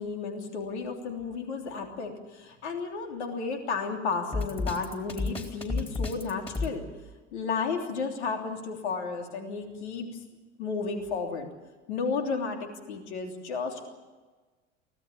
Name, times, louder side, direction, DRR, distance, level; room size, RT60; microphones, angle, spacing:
voice 1, 0.0-6.9 7.3-10.1 10.6-11.5 11.9-13.9, left 4 dB, 70° left, 3 dB, 3.3 m, -33 dB
Drum kit, 4.3-6.7, left 3 dB, 15° left, 4.2 m, -31 dB
24.0 x 17.0 x 8.6 m, 1.3 s
figure-of-eight pair, 70°, 35 cm